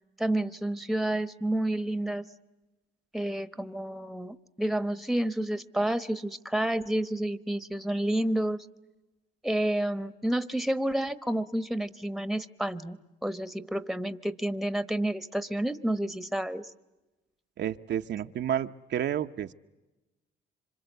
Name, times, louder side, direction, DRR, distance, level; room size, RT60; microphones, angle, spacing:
voice 1, 0.2-2.2 3.1-8.6 9.4-16.7, right 1 dB, ahead, 13 dB, 1.1 m, -30 dB
voice 2, 17.6-19.5, right 10 dB, 60° right, 7 dB, 0.8 m, -30 dB
27.5 x 25.5 x 8.1 m, 1.1 s
cardioid pair, 90°, 20 cm